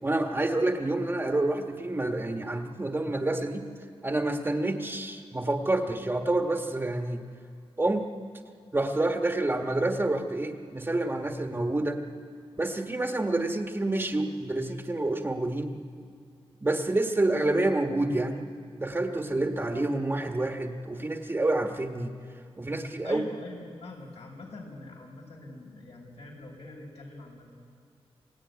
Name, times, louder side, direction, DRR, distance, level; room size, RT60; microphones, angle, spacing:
voice 1, 0.0-3.7 4.0-7.2 7.8-8.1 8.7-12.0 12.6-15.8 16.6-18.5 18.8-22.1 22.6-23.2, right 2 dB, 20° right, 4 dB, 1.4 m, -28 dB
voice 2, 23.0-27.5, left 2 dB, 80° left, 0 dB, 5.5 m, -44 dB
27.5 x 16.5 x 9.7 m, 2.4 s
wide cardioid pair, 125°, 10 cm